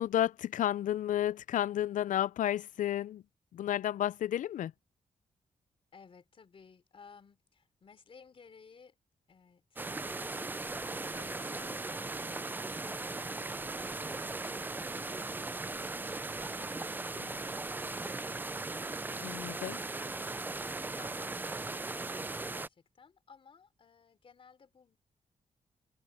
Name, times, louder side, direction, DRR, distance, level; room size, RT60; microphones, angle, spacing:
voice 1, 0.0-3.2 3.5-4.7 17.2-17.3 19.2-19.8, left 11 dB, 75° left, 0.4 m, -31 dB
voice 2, 5.9-9.0 9.3-15.1 15.8-19.3 19.9-25.0, left 5 dB, 45° left, 3.7 m, -58 dB
sound 1, 9.8-22.7, right 3 dB, 15° right, 0.4 m, -38 dB
open air
wide cardioid pair, 150°, 13 cm